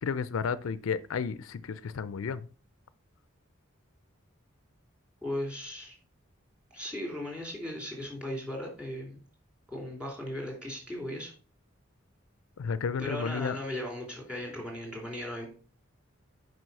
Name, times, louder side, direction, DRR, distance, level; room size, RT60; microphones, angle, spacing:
voice 1, 0.0-2.5 12.6-13.6, left 6 dB, 80° left, 0.4 m, -32 dB
voice 2, 5.2-5.9 6.7-9.2 9.7-11.3 13.0-15.5, left 1 dB, 5° right, 2.9 m, -37 dB
6.2 x 5.3 x 5.5 m
head